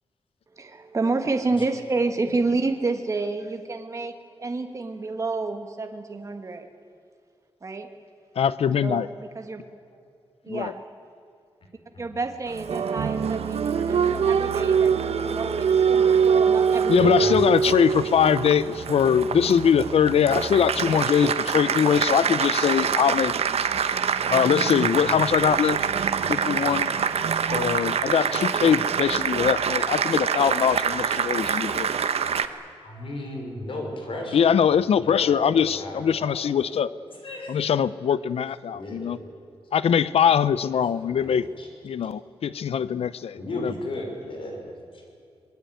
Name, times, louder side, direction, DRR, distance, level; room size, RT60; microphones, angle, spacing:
voice 1, 0.6-4.1 4.4-6.7 7.6-7.9 8.8-9.6 10.4-10.8 12.0-17.9, right 3 dB, 30° right, 5 dB, 1.8 m, -29 dB
voice 2, 8.4-9.1 10.5-10.7 16.9-23.3 24.3-25.9 26.3-26.9 27.5-31.9 34.3-36.9 37.5-39.2 39.7-41.4 41.8-43.3 43.6-43.7, left 8 dB, 80° left, 17 dB, 0.7 m, -22 dB
Applause, 12.5-32.5, right 7 dB, 80° right, 1.2 m, -24 dB
voice 3, 16.9-17.4 32.8-34.7 35.0-36.4 36.7-36.8 37.1-37.6 38.7-39.2 40.9-41.7 43.3-45.0, left 1 dB, 60° left, 2 dB, 5.8 m, -35 dB
26.0 x 22.0 x 9.3 m, 2.5 s
wide cardioid pair, 170°, 10 cm